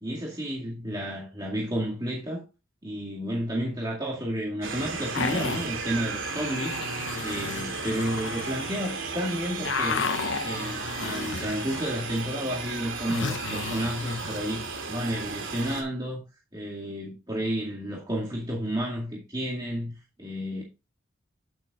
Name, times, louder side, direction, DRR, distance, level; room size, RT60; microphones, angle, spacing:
voice 1, 0.0-2.4 2.8-6.8 7.2-10.1 10.4-16.2 16.5-20.6, equal, 20° right, 2.1 m, -31 dB
sound 1, 4.6-15.8, right 5 dB, 75° right, 2.6 m, -35 dB
sound 2, 5.1-5.7 6.2-9.0 9.3-12.1 12.4-14.4, left 5 dB, 65° left, 0.8 m, -33 dB
9.6 x 8.7 x 2.4 m
head